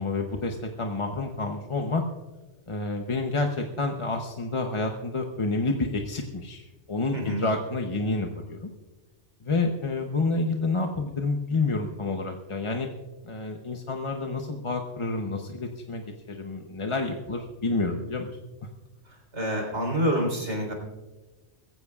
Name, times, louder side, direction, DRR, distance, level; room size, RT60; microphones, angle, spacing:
voice 1, 0.0-2.0 2.7-8.7 9.4-12.9 13.3-18.3, left 3 dB, 30° left, 3 dB, 0.8 m, -29 dB
voice 2, 7.1-7.5 19.3-20.7, equal, 70° right, 0 dB, 4.1 m, -27 dB
21.5 x 15.5 x 2.4 m, 1.2 s
omnidirectional pair, 1.2 m